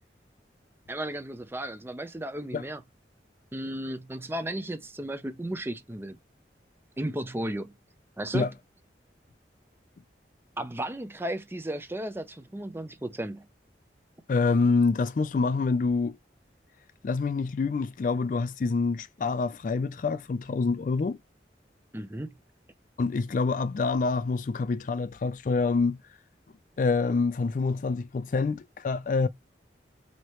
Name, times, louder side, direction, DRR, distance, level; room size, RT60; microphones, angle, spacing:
voice 1, 0.9-2.8 3.5-6.2 7.0-7.7 8.2-8.5 10.6-13.5 21.9-22.3, right 1 dB, 15° right, 0.5 m, -34 dB
voice 2, 14.3-16.2 17.0-21.2 23.0-26.0 26.8-29.3, left 4 dB, 45° left, 0.3 m, -26 dB
4.6 x 2.8 x 3.1 m
head